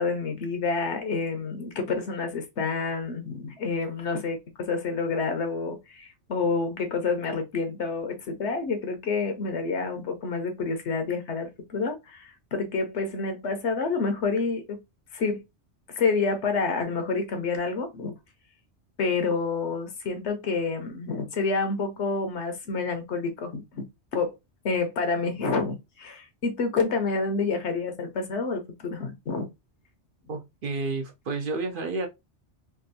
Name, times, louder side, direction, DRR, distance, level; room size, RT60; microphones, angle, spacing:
voice 1, 0.0-14.8 15.1-15.4 15.9-18.1 19.0-23.8 24.1-24.3 24.6-29.5, left 4 dB, 75° left, 1.1 m, -28 dB
voice 2, 30.3-32.1, right 3 dB, 55° right, 0.7 m, -30 dB
3.5 x 2.4 x 2.6 m
omnidirectional pair, 1.2 m